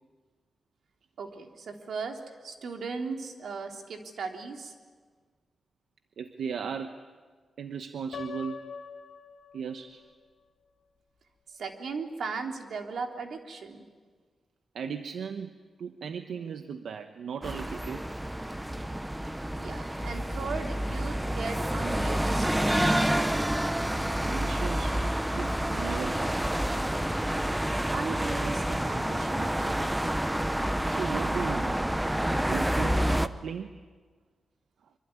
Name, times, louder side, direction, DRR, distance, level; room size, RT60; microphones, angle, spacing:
voice 1, 1.2-4.7 11.5-13.8 19.6-23.4 27.9-30.1, right 4 dB, 70° right, 4 dB, 3.0 m, -37 dB
voice 2, 6.2-7.1 7.6-8.7 9.5-10.0 14.7-18.0 24.2-26.4 30.8-31.9 32.4-33.7, right 6 dB, 90° right, 8 dB, 1.0 m, -37 dB
Piano, 8.1-10.1, left 6 dB, 75° left, 2.4 m, -43 dB
sound 1, 17.4-33.3, right 1 dB, 5° right, 0.8 m, -28 dB
25.0 x 24.5 x 9.6 m, 1.5 s
wide cardioid pair, 170°, 0 cm